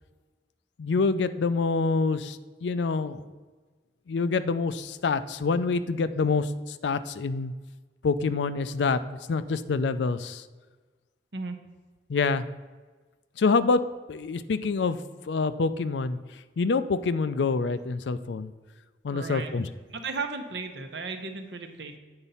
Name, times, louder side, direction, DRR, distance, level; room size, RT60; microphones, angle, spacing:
voice 1, 0.8-3.3 4.1-7.5 8.0-9.0 9.3-10.4 12.1-12.4 13.4-13.8 14.1-15.0 15.3-16.2 16.6-18.5 19.0-19.7, left 4 dB, 80° left, 13 dB, 0.4 m, -26 dB
voice 2, 19.1-19.5 19.9-22.0, right 4 dB, 80° right, 6 dB, 0.9 m, -35 dB
8.8 x 4.1 x 5.5 m, 1.3 s
head